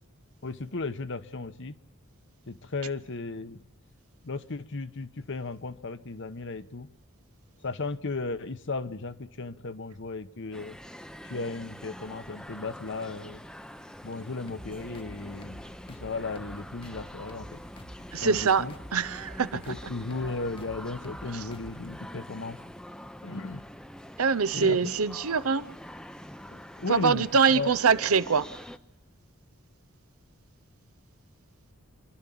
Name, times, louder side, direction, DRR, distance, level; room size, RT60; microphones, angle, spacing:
voice 1, 0.4-1.8 2.5-3.7 4.2-6.9 7.6-10.8 11.2-13.4 14.0-17.6 18.2-18.7 19.5-22.6 23.2-23.7 24.5-24.9 26.5-27.7, left 3 dB, 60° left, 1.0 m, -35 dB
sound 1, 10.5-28.8, equal, 5° left, 0.7 m, -45 dB
sound 2, 14.5-22.0, equal, 25° left, 1.1 m, -48 dB
voice 2, 18.1-18.7 18.9-19.6 21.3-21.4 24.2-25.7 26.9-28.5, right 5 dB, 80° right, 0.8 m, -24 dB
27.5 x 12.0 x 8.6 m
head